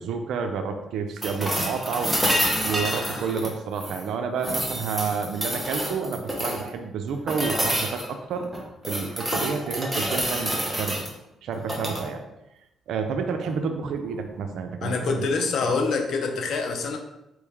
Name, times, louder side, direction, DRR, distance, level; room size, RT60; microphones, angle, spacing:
voice 1, 0.0-2.1 2.6-8.5 8.9-11.0 11.4-12.2 12.9-15.2, right 5 dB, 75° right, 6 dB, 0.4 m, -29 dB
sound 1, 1.2-4.0 4.4-6.7 7.3-8.1 8.5-11.1 11.6-12.0 14.1-14.2, equal, 10° right, 1.0 m, -28 dB
voice 2, 14.8-17.0, left 4 dB, 65° left, 4 dB, 0.6 m, -26 dB
4.4 x 3.1 x 3.5 m, 0.91 s
cardioid pair, 90°, 0 cm